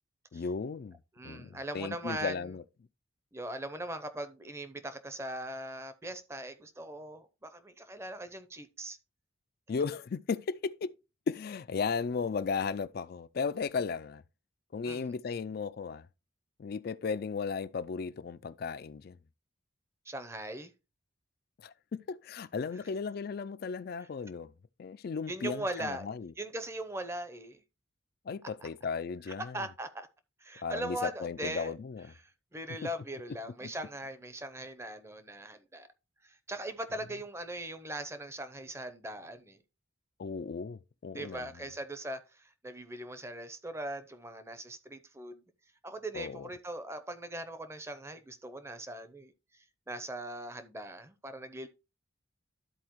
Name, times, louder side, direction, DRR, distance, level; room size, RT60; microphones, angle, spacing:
voice 1, 0.3-1.0 1.2-2.6 9.7-10.9 11.3-14.2 14.7-16.1 16.6-19.2 21.6-24.5 24.8-26.3 28.3-29.6 30.6-32.1 40.2-41.5 46.1-46.5, left 5 dB, 45° left, 0.3 m, -35 dB
voice 2, 1.1-2.5 3.3-9.0 14.8-15.1 20.1-20.7 24.0-24.1 25.3-27.6 28.6-28.7 29.4-30.1 30.4-31.7 32.2-35.9 36.2-39.6 41.1-45.4 45.8-51.7, right 1 dB, 15° right, 0.6 m, -40 dB
12.5 x 4.2 x 3.0 m
head